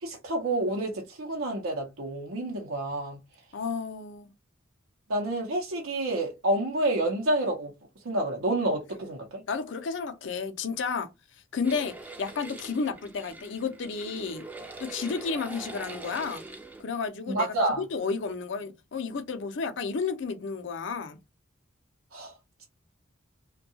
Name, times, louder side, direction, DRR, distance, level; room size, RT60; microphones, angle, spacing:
voice 1, 0.0-3.2 5.1-7.7 8.0-9.4 17.3-17.8 22.1-22.3, right 1 dB, 90° right, 0.7 m, -29 dB
voice 2, 3.5-4.3 9.5-11.1 11.5-14.4 14.8-16.4 16.8-17.5 17.8-21.2, left 5 dB, 60° left, 0.5 m, -32 dB
sound 1, 11.6-16.8, right 3 dB, 10° right, 0.4 m, -43 dB
2.6 x 2.2 x 2.7 m
head